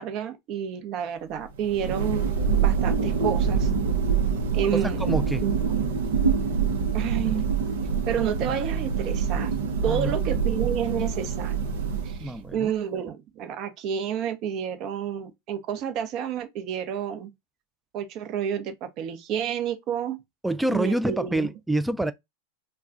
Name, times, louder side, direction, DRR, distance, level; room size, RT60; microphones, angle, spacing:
voice 1, 0.0-2.3 2.6-3.7 4.5-5.1 5.4-5.5 6.9-7.5 8.1-9.5 9.8-11.6 12.0-17.3 17.9-20.2 20.7-21.5, right 9 dB, 45° right, 0.8 m, -30 dB
Thunder, 1.5-12.5, right 6 dB, 75° right, 0.8 m, -25 dB
voice 2, 4.7-5.4 9.9-10.1 12.2-12.7 20.4-22.1, right 1 dB, 5° right, 0.3 m, -27 dB
2.3 x 2.3 x 3.8 m
hypercardioid pair, 100°, 0 cm